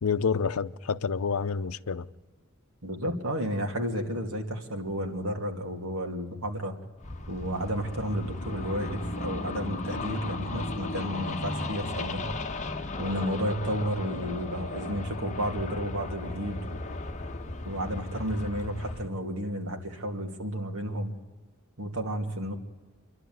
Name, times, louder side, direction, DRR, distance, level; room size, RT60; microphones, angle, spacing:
voice 1, 0.0-2.1, left 5 dB, 85° left, 0.6 m, -28 dB
voice 2, 2.8-6.7 7.3-12.2 13.0-16.8 17.6-21.1 21.8-22.6, equal, 80° right, 2.7 m, -32 dB
sound 1, 7.0-19.1, left 2 dB, 35° left, 1.2 m, -36 dB
27.5 x 11.5 x 9.4 m
head